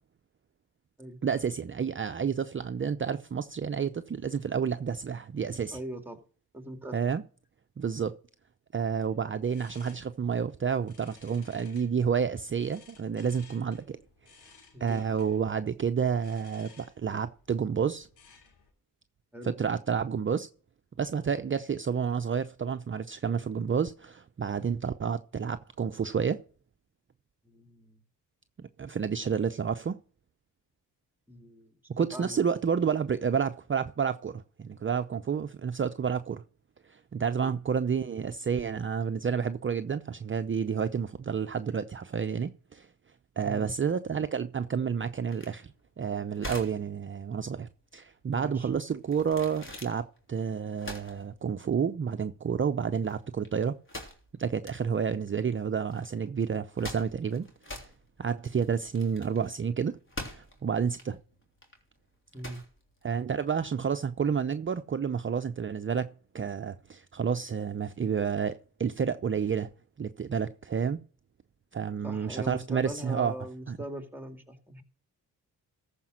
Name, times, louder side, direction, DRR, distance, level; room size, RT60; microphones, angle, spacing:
voice 1, 1.2-5.8 6.9-7.2 7.8-8.1 8.7-14.0 14.8-18.1 19.4-20.5 21.0-26.4 28.8-30.0 31.9-36.4 36.8-42.9 43.4-53.8 54.4-57.9 58.2-60.0 60.3-61.2 63.0-69.7 70.0-71.0 71.7-73.4 73.7-73.8, right 6 dB, 30° right, 0.6 m, -30 dB
voice 2, 5.7-6.2 6.5-7.0 14.7-15.0 19.3-19.6 27.4-28.0 31.3-32.5 43.4-43.7 48.3-48.7 62.3-62.6 72.0-74.8, right 1 dB, 5° right, 2.3 m, -41 dB
sound 1, 9.0-18.7, left 5 dB, 85° left, 2.9 m, -59 dB
sound 2, 45.3-63.8, left 1 dB, 30° left, 3.3 m, -45 dB
14.0 x 5.2 x 6.1 m
supercardioid pair, 60°, 39 cm